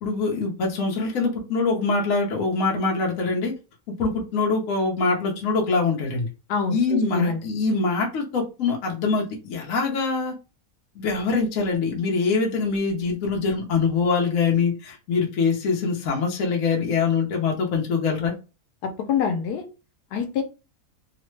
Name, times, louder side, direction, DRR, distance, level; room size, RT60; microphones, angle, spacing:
voice 1, 0.0-3.5 4.0-6.3 6.7-10.3 11.0-18.3, left 4 dB, 65° left, 0 dB, 1.1 m, -24 dB
voice 2, 6.5-7.4 18.8-19.6 20.1-20.4, left 6 dB, 90° left, 6 dB, 1.2 m, -25 dB
3.1 x 2.0 x 3.1 m, 0.31 s
omnidirectional pair, 1.7 m